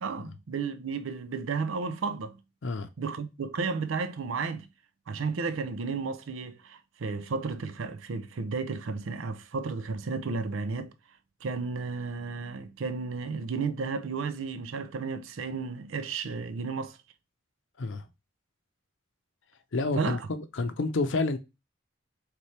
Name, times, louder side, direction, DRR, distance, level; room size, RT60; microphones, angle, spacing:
voice 1, 0.0-2.4 3.0-4.7 5.1-10.9 11.4-17.0 19.9-20.3, right 4 dB, 85° right, 0.5 m, -33 dB
voice 2, 19.7-20.2 20.5-21.4, left 3 dB, 75° left, 0.6 m, -28 dB
3.4 x 3.3 x 4.2 m
head